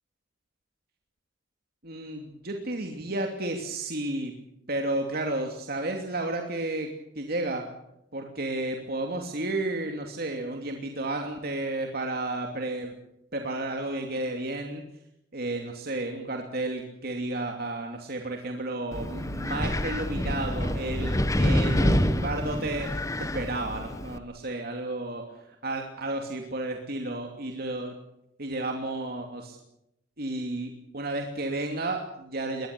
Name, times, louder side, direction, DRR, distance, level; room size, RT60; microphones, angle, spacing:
voice 1, 1.8-4.3 4.7-7.7 8.1-12.9 13.3-14.8 15.3-22.9 23.2-25.2 25.6-27.9 28.4-29.6 30.2-32.7, right 2 dB, 55° right, 3 dB, 2.8 m, -32 dB
Wind, 18.9-24.2, left 1 dB, 20° left, 1.2 m, -27 dB
22.0 x 20.0 x 8.5 m, 0.82 s
head